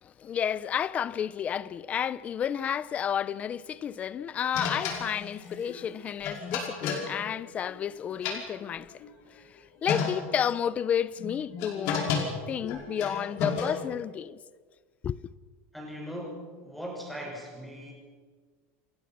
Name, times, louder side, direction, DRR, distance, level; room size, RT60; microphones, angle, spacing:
voice 1, 0.0-8.9 9.3-12.1 12.5-14.4 15.0-15.2, left 8 dB, 20° left, 0.6 m, -31 dB
sound 1, 4.5-7.8 8.1-9.1 9.6-9.7 9.9-10.5 11.2-14.0, left 6 dB, 50° left, 5.3 m, -32 dB
voice 2, 15.7-17.9, equal, ahead, 6.6 m, -39 dB
29.0 x 21.0 x 6.0 m
supercardioid pair, 175°, 7 cm